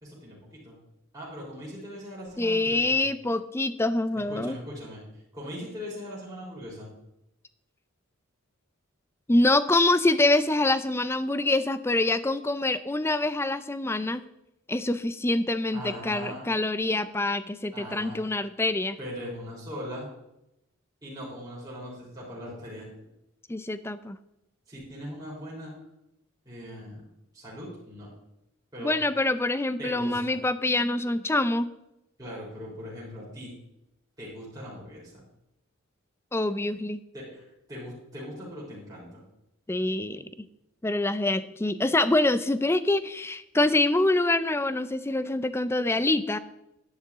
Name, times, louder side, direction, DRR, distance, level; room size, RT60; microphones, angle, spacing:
voice 1, 0.0-0.8 1.1-2.9 4.3-5.0 5.3-6.9 15.7-16.4 17.7-18.3 19.0-20.1 21.0-22.9 24.7-25.7 26.5-27.0 27.3-28.1 28.7-28.9 29.8-30.4 32.2-33.5 34.2-35.2 37.1-39.2, equal, 15° right, -7 dB, 3.8 m, -40 dB
voice 2, 2.4-4.6 9.3-14.2 14.7-19.0 23.5-24.2 28.8-31.7 36.3-37.0 39.7-40.2 40.8-46.4, left 2 dB, 10° left, 13 dB, 0.4 m, -25 dB
10.5 x 10.5 x 3.6 m, 0.86 s
head